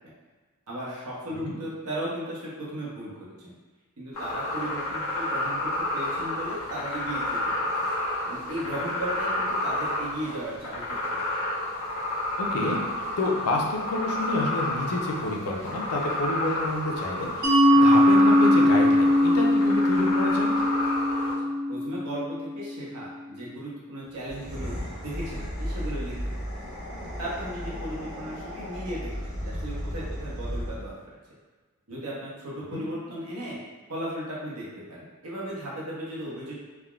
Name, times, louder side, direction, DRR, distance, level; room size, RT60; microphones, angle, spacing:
voice 1, 0.7-3.1 3.4-3.5 4.0-7.4 8.2-11.0 21.2-21.3 21.7-24.8 25.0-26.4 27.2-31.2 31.9-33.6 33.9-36.5, right 1 dB, 80° right, -6 dB, 0.9 m, -36 dB
sound 1, 4.2-21.3, left 1 dB, 65° left, 1.0 m, -30 dB
voice 2, 12.4-12.8 13.2-20.5 32.7-32.8, left 2 dB, 80° left, 0 dB, 0.5 m, -29 dB
Mallet percussion, 17.4-22.8, left 1 dB, 45° right, 0.7 m, -21 dB
sound 2, 24.2-31.0, equal, 15° right, 1.0 m, -34 dB
3.4 x 2.1 x 2.3 m, 1.3 s
head